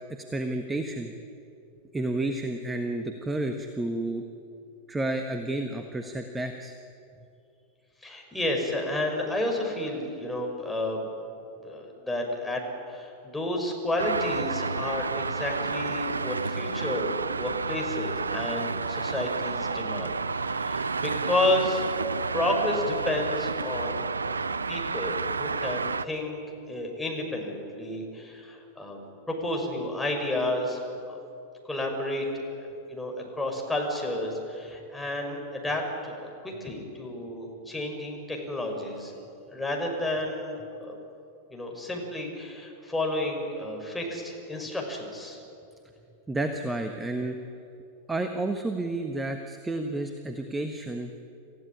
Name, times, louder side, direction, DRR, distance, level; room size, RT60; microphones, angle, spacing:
voice 1, 0.3-1.1 1.9-4.2 4.9-6.7 46.3-47.4 48.1-51.1, right 2 dB, 10° right, 6 dB, 1.4 m, -31 dB
voice 2, 8.0-11.1 11.6-12.6 12.9-24.1 24.3-26.4 26.7-29.0 29.3-30.8 31.1-31.2 31.6-32.2 32.9-39.1 39.5-40.9 41.5-45.4, left 1 dB, 5° left, 0 dB, 5.8 m, -31 dB
Traffic noise roadway noise, 14.0-26.1, right 4 dB, 75° right, 0.6 m, -30 dB
28.0 x 15.5 x 10.0 m, 2.6 s
figure-of-eight pair, 90°, 0 cm